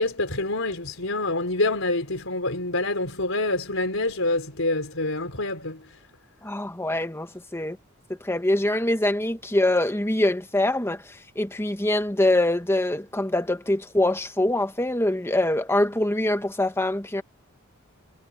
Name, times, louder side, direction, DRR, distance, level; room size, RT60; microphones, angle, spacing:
voice 1, 0.0-5.8, left 2 dB, 75° left, 4.5 m, -26 dB
voice 2, 6.4-7.3 7.5-7.8 8.3-11.0 11.4-17.2, left 1 dB, 10° left, 1.2 m, -24 dB
head